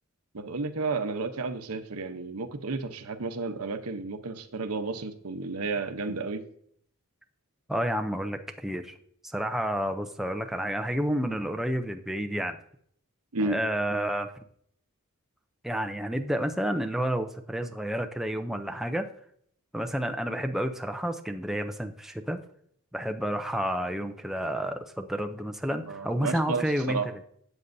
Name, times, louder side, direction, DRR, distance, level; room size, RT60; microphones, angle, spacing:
voice 1, 0.3-6.4 13.3-13.6 25.9-27.1, right 3 dB, 80° right, 9 dB, 0.9 m, -32 dB
voice 2, 7.7-8.9 9.3-12.6 13.4-14.3 15.6-19.1 19.7-22.4 22.9-27.1, equal, ahead, 5 dB, 0.5 m, -30 dB
13.0 x 8.2 x 2.7 m, 0.66 s
head